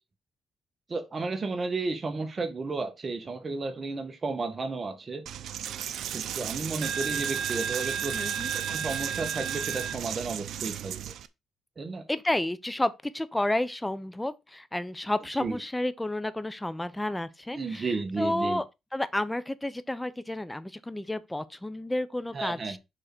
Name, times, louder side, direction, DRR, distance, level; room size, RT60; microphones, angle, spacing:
voice 1, 0.9-5.2 6.0-8.1 8.5-10.9 11.8-12.0 15.4-15.6 17.5-18.6 22.3-22.8, right 3 dB, 35° right, 1.5 m, -33 dB
Coin (dropping), 5.3-11.3, right 8 dB, 75° right, 0.6 m, -33 dB
voice 2, 8.1-8.5 12.1-18.6 18.9-22.8, left 1 dB, 10° left, 0.8 m, -31 dB
6.6 x 3.8 x 6.1 m
cardioid pair, 90°, 0 cm